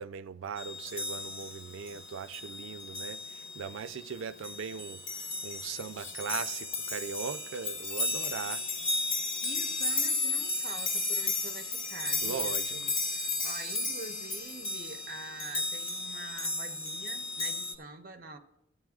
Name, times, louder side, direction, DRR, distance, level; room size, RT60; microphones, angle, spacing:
voice 1, 0.0-8.6 12.2-12.7, right 6 dB, 85° right, 0.4 m, -39 dB
sound 1, 0.6-17.7, left 3 dB, 85° left, 1.6 m, -34 dB
voice 2, 9.4-18.4, right 3 dB, 45° right, 0.8 m, -46 dB
14.5 x 9.3 x 2.4 m
head